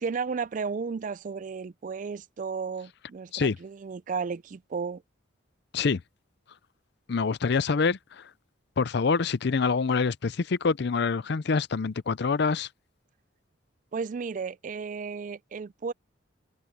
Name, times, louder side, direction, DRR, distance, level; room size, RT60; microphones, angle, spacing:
voice 1, 0.0-5.0 13.9-15.9, right 5 dB, 40° right, 0.3 m, -33 dB
voice 2, 7.1-8.3 8.8-12.7, left 4 dB, 55° left, 0.5 m, -26 dB
head